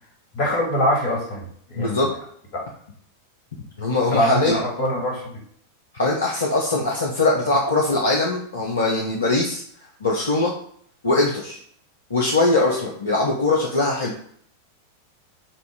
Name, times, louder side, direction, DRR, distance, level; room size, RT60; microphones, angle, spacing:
voice 1, 0.3-2.1 2.5-2.7 4.1-5.3, equal, 50° left, -1 dB, 2.4 m, -23 dB
voice 2, 1.7-2.1 3.8-4.6 5.9-9.6 10.0-10.5 11.0-11.6 12.1-14.1, left 2 dB, 70° left, -2 dB, 0.9 m, -21 dB
7.1 x 2.7 x 5.1 m, 0.63 s
figure-of-eight pair, 90°, 0 cm